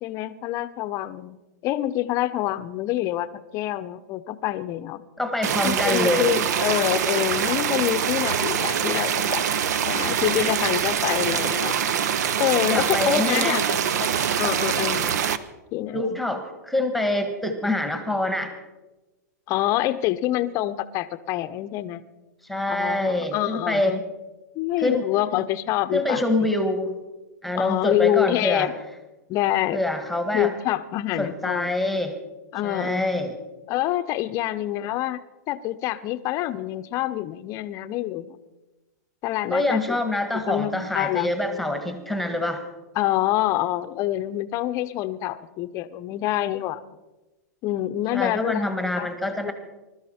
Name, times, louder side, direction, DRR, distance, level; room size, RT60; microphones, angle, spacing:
voice 1, 0.0-1.4 1.6-5.0 5.6-9.4 9.9-11.8 12.4-14.1 14.4-15.2 15.7-16.2 19.5-22.0 22.7-24.0 24.5-26.5 27.6-28.7 29.3-29.8 30.3-31.7 32.5-33.0 33.7-35.2 35.5-38.4 39.2-40.0 40.5-41.3 42.9-46.8 47.6-49.1 49.4-49.5, left 14 dB, 35° left, 13 dB, 0.7 m, -26 dB
voice 2, 5.2-6.3 12.7-13.6 15.9-18.5 22.4-24.0 24.8-25.0 25.9-27.0 27.4-28.7 29.7-30.5 31.2-32.1 32.6-33.3 39.5-42.6 48.1-49.5, left 1 dB, ahead, 7 dB, 1.4 m, -25 dB
sound 1, 5.4-15.4, right 8 dB, 70° right, 0.8 m, -24 dB
21.0 x 12.5 x 4.3 m, 1.1 s
hypercardioid pair, 135°, 9 cm